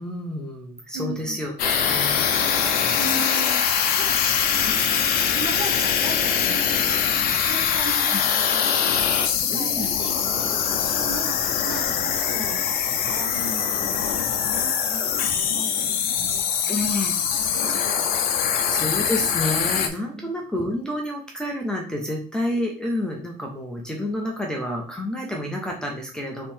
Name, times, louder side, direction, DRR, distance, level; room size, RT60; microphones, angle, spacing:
voice 1, 0.0-3.0 8.1-8.2 9.5-9.9 16.6-17.1 17.5-17.6 18.7-26.5, left 1 dB, 5° left, -2 dB, 0.6 m, -29 dB
voice 2, 0.9-1.4 2.9-3.6 3.9-18.8 20.1-20.3, right 3 dB, 40° right, 3 dB, 1.0 m, -38 dB
sound 1, 1.6-19.9, left 7 dB, 55° left, 0.7 m, -23 dB
3.7 x 3.1 x 4.3 m, 0.39 s
cardioid pair, 170°, 18 cm